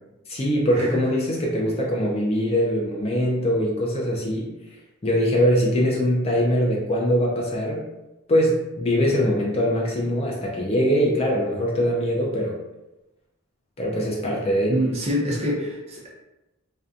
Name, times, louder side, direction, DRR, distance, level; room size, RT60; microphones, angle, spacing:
voice 1, 0.3-4.5 5.0-7.9 8.3-12.6 13.8-14.8, equal, 25° left, -3 dB, 0.3 m, -22 dB
voice 2, 14.7-16.2, equal, 30° right, -4 dB, 0.6 m, -26 dB
2.6 x 2.2 x 2.4 m, 0.98 s
head